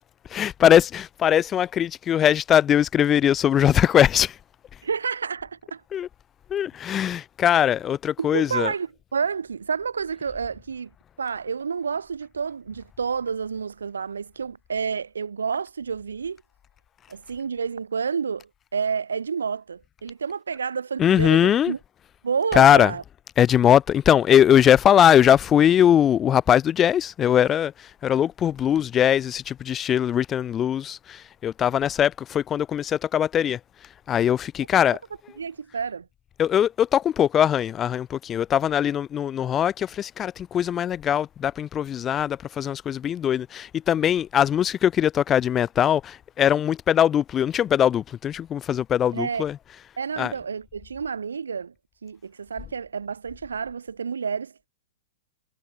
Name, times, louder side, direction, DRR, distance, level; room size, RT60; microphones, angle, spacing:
voice 1, 0.3-4.4 5.9-6.1 6.5-8.7 21.0-21.7 22.5-22.9 23.4-33.6 34.1-35.0 36.4-49.6 50.2-50.3, left 9 dB, 25° left, 0.4 m, -21 dB
voice 2, 4.8-5.8 8.2-10.9 11.2-16.4 17.1-21.8 22.2-23.0 35.4-36.1 49.1-49.4 50.0-51.7 52.0-54.7, right 6 dB, 80° right, 1.5 m, -29 dB
figure-of-eight pair, 110°, 0 cm